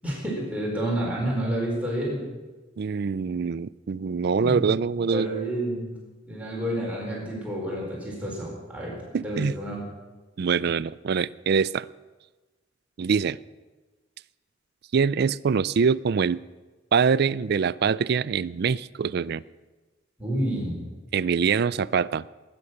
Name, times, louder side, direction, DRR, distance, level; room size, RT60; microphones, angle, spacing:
voice 1, 0.0-2.2 4.3-4.7 5.0-6.0 6.3-9.8 20.2-20.8, right 1 dB, 10° right, -4 dB, 4.4 m, -29 dB
voice 2, 2.8-5.3 9.1-9.5 10.4-11.9 13.0-13.4 14.9-16.4 16.9-19.4 21.1-22.2, right 6 dB, 55° right, 18 dB, 0.4 m, -24 dB
19.0 x 9.9 x 6.5 m, 1.2 s
head